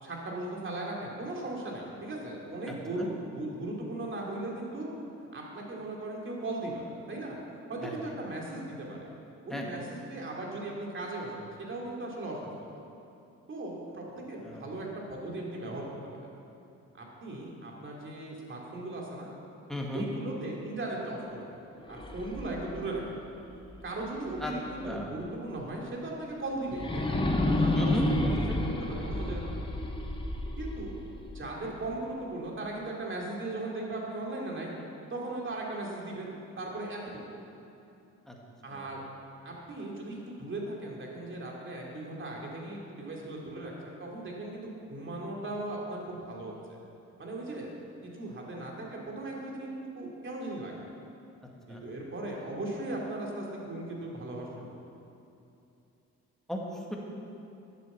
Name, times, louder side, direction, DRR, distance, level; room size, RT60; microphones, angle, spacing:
voice 1, 0.0-4.9 5.3-7.4 7.7-9.0 9.5-12.4 13.5-15.9 16.9-19.3 19.9-21.6 21.9-23.0 23.8-29.6 30.6-30.9 31.3-34.7 35.1-36.3 36.6-37.4 38.6-39.0 39.4-46.8 47.2-47.7 48.0-49.7 50.0-50.7 51.7-54.7, right 2 dB, 40° right, -2 dB, 2.8 m, -38 dB
voice 2, 9.5-9.9 14.4-14.7 19.7-20.1 24.4-24.5 24.8-25.1 27.8-28.6 38.3-38.4 38.7-38.9 51.7-51.8 56.5-57.0, equal, ahead, -2 dB, 2.0 m, -35 dB
sound 1, 21.8-24.8 25.2-25.3 26.7-31.8, left 1 dB, 15° left, 1.1 m, -31 dB
10.5 x 7.8 x 7.0 m, 2.8 s
cardioid pair, 90°, 30 cm